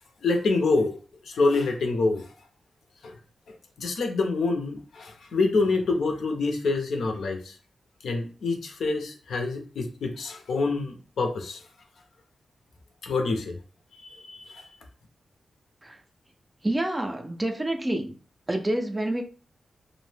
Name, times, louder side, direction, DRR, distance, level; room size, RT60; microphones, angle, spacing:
voice 1, 0.2-1.0 1.2-2.3 3.0-3.2 3.5-7.6 8.0-11.6 13.0-13.6 13.9-14.7, left 3 dB, 80° left, 0.6 m, -26 dB
voice 2, 16.6-18.1 18.5-19.2, right 1 dB, 15° right, 0.3 m, -28 dB
2.6 x 2.0 x 3.2 m
wide cardioid pair, 160°, 0 cm